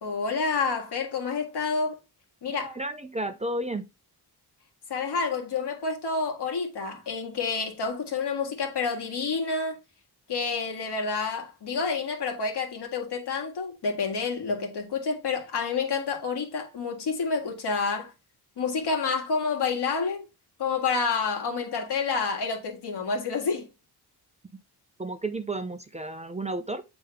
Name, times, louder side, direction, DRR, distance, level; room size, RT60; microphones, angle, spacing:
voice 1, 0.0-2.0 2.4-2.7 4.9-9.8 10.3-18.1 18.6-20.2 20.6-23.7, left 4 dB, 80° left, 2.0 m, -29 dB
voice 2, 2.6-3.8 25.0-26.8, right 2 dB, 15° right, 0.5 m, -32 dB
8.3 x 3.5 x 3.2 m
wide cardioid pair, 135°, 40 cm